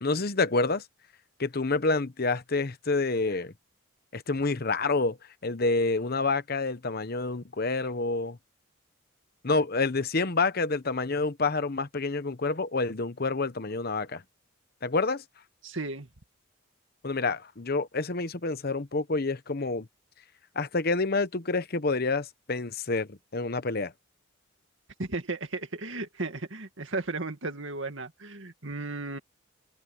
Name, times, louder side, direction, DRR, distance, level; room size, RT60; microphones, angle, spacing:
voice 1, 0.0-0.8 1.4-3.5 4.1-5.2 5.4-8.4 9.4-14.2 14.8-15.2 17.0-19.9 20.5-23.9, left 3 dB, 50° left, 1.0 m, -28 dB
voice 2, 15.6-16.1 25.0-29.2, right 3 dB, 65° right, 2.2 m, -35 dB
head